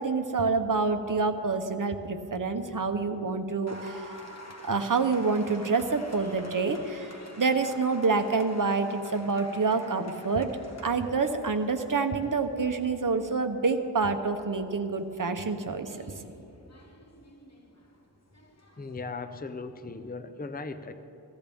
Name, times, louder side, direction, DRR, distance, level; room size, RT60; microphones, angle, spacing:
voice 1, 0.0-4.1 4.6-7.1 7.4-10.6 10.8-16.3, right 4 dB, 50° right, 7 dB, 0.8 m, -27 dB
Applause, 3.7-19.0, equal, 40° left, 1.3 m, -50 dB
voice 2, 18.8-20.9, left 3 dB, 20° left, 10 dB, 0.5 m, -38 dB
17.0 x 14.0 x 3.5 m, 2.8 s
wide cardioid pair, 50°, 43 cm